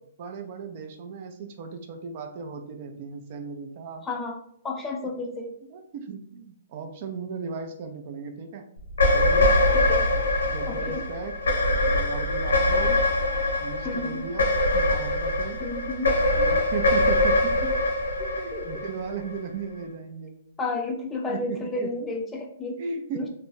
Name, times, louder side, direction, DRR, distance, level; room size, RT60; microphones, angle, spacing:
voice 1, 0.2-4.1 5.0-5.1 5.7-8.6 9.0-9.6 10.1-11.4 11.9-13.0 13.6-15.6 16.4-17.7 18.3-20.4 21.3-21.9 22.8-23.3, right 5 dB, 50° right, 5 dB, 0.4 m, -36 dB
voice 2, 4.0-4.4 4.6-5.5 9.7-10.1 10.7-11.1 13.8-14.3 15.6-16.2 18.2-18.9 20.6-22.8 23.1-23.3, left 2 dB, 15° left, 1 dB, 0.5 m, -32 dB
sound 1, 8.9-19.4, left 1 dB, 80° left, 0.7 m, -23 dB
2.3 x 2.1 x 3.1 m, 0.68 s
hypercardioid pair, 125°, 0 cm